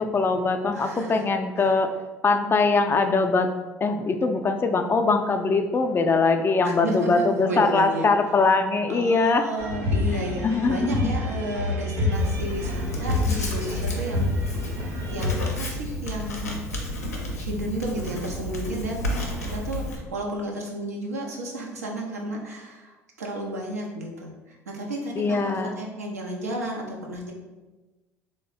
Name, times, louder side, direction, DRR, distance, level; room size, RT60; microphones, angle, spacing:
voice 1, 0.0-1.9 2.2-3.5 3.8-9.5 10.4-11.1 25.2-25.7, left 4 dB, 30° left, 7 dB, 0.3 m, -22 dB
voice 2, 0.7-1.2 6.6-8.1 8.9-14.3 14.7-16.6 17.3-27.3, right 1 dB, 85° right, -1 dB, 0.5 m, -32 dB
sound 1, 9.6-15.5, left 3 dB, 60° right, 0.8 m, -27 dB
Writing, 12.1-20.0, equal, 85° left, 0.5 m, -32 dB
3.1 x 2.1 x 3.8 m, 1.2 s
figure-of-eight pair, 60°, 8 cm